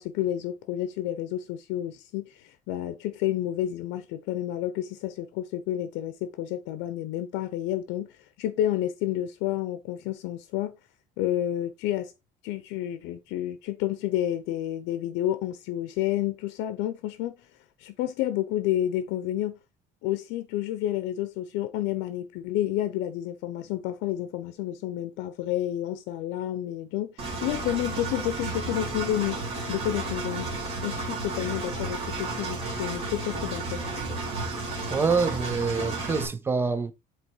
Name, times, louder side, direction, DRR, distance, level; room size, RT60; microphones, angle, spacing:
voice 1, 0.0-8.1 8.4-10.7 11.2-12.1 12.4-17.4 17.8-19.6 20.0-27.1 27.4-29.4 29.7-30.5 30.8-33.8, left 12 dB, 80° left, 0.7 m, -30 dB
Engine, 27.2-36.3, right 3 dB, 30° right, 2.2 m, -32 dB
voice 2, 34.9-36.9, right 4 dB, 10° right, 0.5 m, -26 dB
7.9 x 3.2 x 4.5 m
cardioid pair, 180°, 18 cm